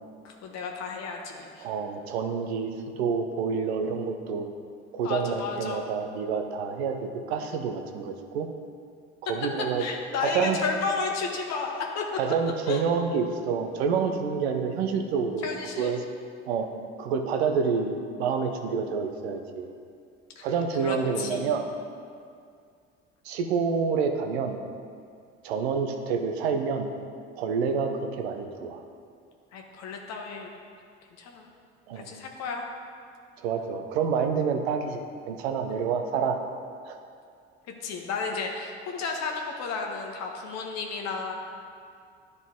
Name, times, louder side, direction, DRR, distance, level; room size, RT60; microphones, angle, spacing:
voice 1, 0.2-1.7 5.0-5.8 9.8-12.0 12.7-12.8 15.4-16.0 20.4-20.5 20.8-21.4 29.5-30.5 31.2-31.5 31.9-32.6 37.8-41.4, left 4 dB, 55° left, 1 dB, 1.1 m, -32 dB
voice 2, 1.6-2.7 3.0-4.5 4.9-8.5 9.2-9.8 10.2-10.6 12.2-15.5 15.8-16.0 16.5-16.7 17.0-19.7 20.4-21.6 23.2-24.6 25.4-26.9 27.4-28.8 31.9-32.1 33.4-36.4 36.8-37.0, right 5 dB, 80° right, 5 dB, 0.7 m, -28 dB
11.0 x 4.0 x 3.6 m, 2.3 s
hypercardioid pair, 65°, 32 cm